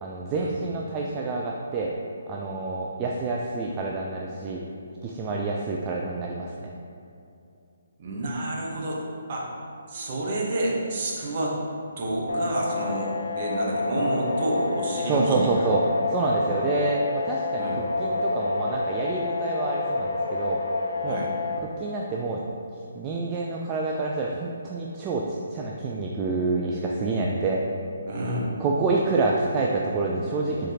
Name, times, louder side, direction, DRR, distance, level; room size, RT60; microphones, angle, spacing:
voice 1, 0.0-1.9 2.3-4.6 5.0-6.7 15.1-17.7 18.0-20.6 21.0-21.2 21.8-22.4 22.9-27.6 28.6-30.7, right 3 dB, 20° right, -2 dB, 0.3 m, -27 dB
voice 2, 8.0-9.0 9.3-9.5 9.9-11.6 12.0-15.5 17.6-17.8 21.0-21.3 28.1-28.5, right 1 dB, 40° right, -3 dB, 0.9 m, -29 dB
sound 1, 12.3-21.6, left 3 dB, 70° left, 0.6 m, -28 dB
4.8 x 3.8 x 2.8 m, 2.6 s
figure-of-eight pair, 140°, 0 cm